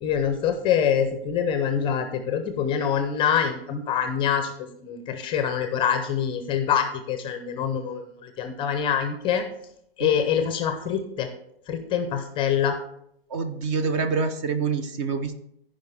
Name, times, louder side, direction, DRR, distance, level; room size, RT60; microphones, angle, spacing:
voice 1, 0.0-9.4 10.0-11.3 11.7-12.8, left 8 dB, 15° left, 7 dB, 0.6 m, -25 dB
voice 2, 13.3-15.3, right 5 dB, 30° right, 10 dB, 0.7 m, -26 dB
15.0 x 5.1 x 3.5 m, 0.75 s
hypercardioid pair, 135°, 31 cm